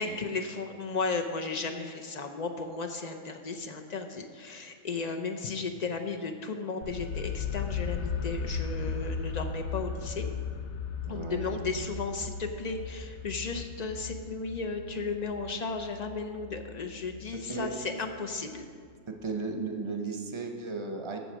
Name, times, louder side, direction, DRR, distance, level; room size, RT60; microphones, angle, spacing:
voice 1, 0.0-10.3 11.1-18.7, left 4 dB, 50° left, 5 dB, 0.5 m, -35 dB
sound 1, 6.8-18.6, left 5 dB, 70° left, 1.0 m, -37 dB
voice 2, 11.1-11.5 17.3-17.7 19.1-21.2, right 4 dB, 30° right, 4 dB, 0.7 m, -35 dB
7.8 x 7.5 x 6.1 m, 2.1 s
omnidirectional pair, 1.3 m